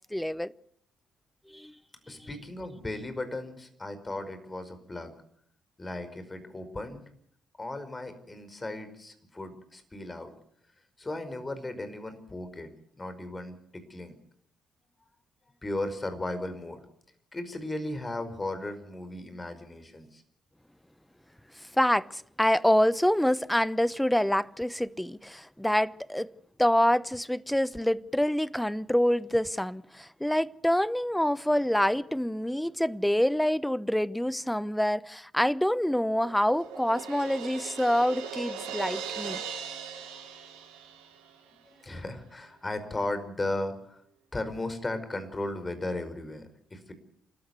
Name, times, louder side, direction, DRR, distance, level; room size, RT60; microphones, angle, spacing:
voice 1, 0.1-0.5 1.5-1.7 21.6-26.3 26.6-39.4, equal, 5° left, 0.9 m, -26 dB
voice 2, 2.1-5.1 5.8-7.1 7.6-10.3 11.0-12.7 13.0-14.2 15.6-16.8 17.3-20.2 41.6-44.0 44.3-46.9, left 2 dB, 25° left, 5.1 m, -36 dB
Crash cymbal, 35.6-41.4, right 7 dB, 85° right, 6.3 m, -39 dB
28.5 x 13.5 x 8.2 m
hypercardioid pair, 50°, 0 cm